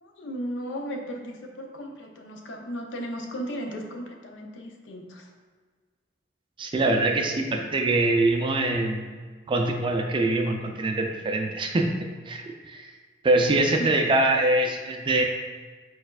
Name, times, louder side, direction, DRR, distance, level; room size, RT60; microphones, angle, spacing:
voice 1, 0.0-5.3 13.7-14.0, equal, 70° left, 2 dB, 0.6 m, -35 dB
voice 2, 6.6-9.0 9.5-12.0 12.3-12.9 13.2-15.2, right 2 dB, 25° right, 3 dB, 0.3 m, -23 dB
4.4 x 4.2 x 2.3 m, 1.5 s
head